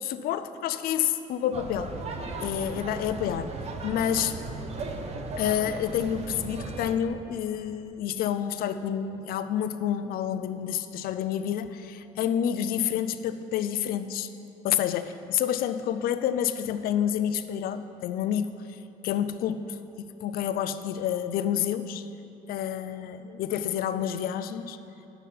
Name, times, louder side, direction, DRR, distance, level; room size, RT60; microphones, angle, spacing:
voice 1, 0.0-2.0 2.4-3.5 3.8-4.4 5.4-14.3 14.6-22.1 22.5-24.8, left 9 dB, 75° left, 11 dB, 0.5 m, -29 dB
sound 1, 1.5-7.0, right 3 dB, 45° right, 0.8 m, -36 dB
9.3 x 6.9 x 5.7 m, 2.9 s
cardioid pair, 135°, 15 cm